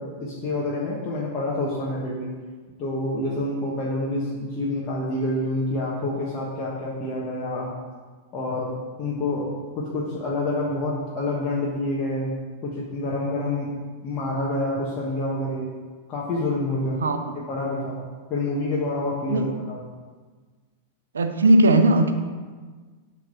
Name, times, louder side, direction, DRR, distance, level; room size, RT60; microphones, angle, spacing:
voice 1, 0.0-2.4 2.8-7.8 8.3-12.3 12.6-13.7 14.0-15.7 16.1-18.0 18.3-19.8, left 2 dB, 35° left, -6 dB, 1.3 m, -27 dB
voice 2, 21.1-22.1, right 1 dB, 75° right, 7 dB, 0.6 m, -17 dB
7.6 x 3.7 x 5.6 m, 1.4 s
figure-of-eight pair, 90°, 0 cm